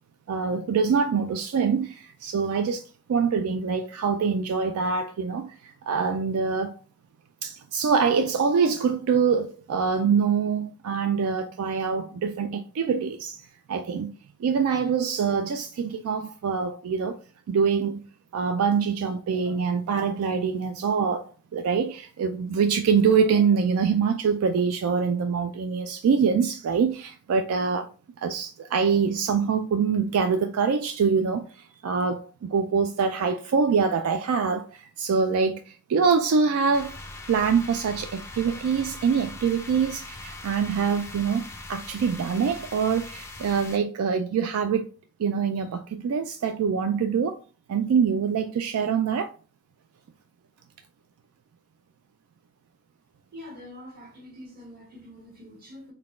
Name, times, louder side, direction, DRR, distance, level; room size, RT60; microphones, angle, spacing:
voice 1, 0.3-6.8 7.4-14.1 14.4-17.2 17.5-18.0 18.3-27.9 28.2-37.0 37.3-44.9 45.2-47.4 47.7-49.3, right 6 dB, 75° right, 0.3 m, -25 dB
sound 1, 36.7-43.8, left 2 dB, 10° left, 0.4 m, -41 dB
voice 2, 53.3-55.9, left 1 dB, 40° right, 1.5 m, -44 dB
3.9 x 2.2 x 3.6 m
head